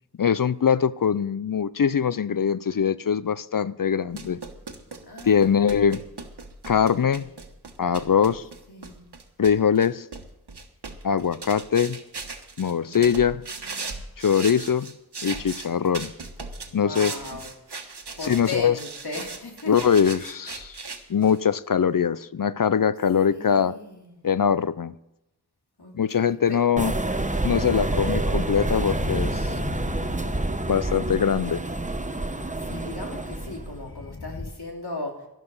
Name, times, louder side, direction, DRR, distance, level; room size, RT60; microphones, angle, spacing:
voice 1, 0.2-4.4 5.2-6.0 6.7-7.2 7.8-8.4 9.4-10.1 11.0-12.0 12.6-13.4 14.2-14.9 15.2-16.1 16.7-17.2 18.2-18.7 19.7-20.8 21.1-23.8 24.2-24.9 25.9-26.9 27.4-29.5 30.7-31.6, left 7 dB, 55° left, 17 dB, 0.5 m, -22 dB
sound 1, 4.1-21.4, right 4 dB, 85° right, 1.4 m, -38 dB
voice 2, 5.1-5.5 8.7-9.0 12.8-14.0 16.7-17.5 18.2-19.7 23.3-24.2 25.8-26.6 32.6-35.1, left 2 dB, 75° left, 1 dB, 2.9 m, -38 dB
sound 2, 26.8-33.7, right 2 dB, 20° right, 0.9 m, -28 dB
sound 3, 27.6-34.5, left 3 dB, 30° left, 1.1 m, -37 dB
12.0 x 11.5 x 5.5 m, 0.88 s
wide cardioid pair, 50°, 39 cm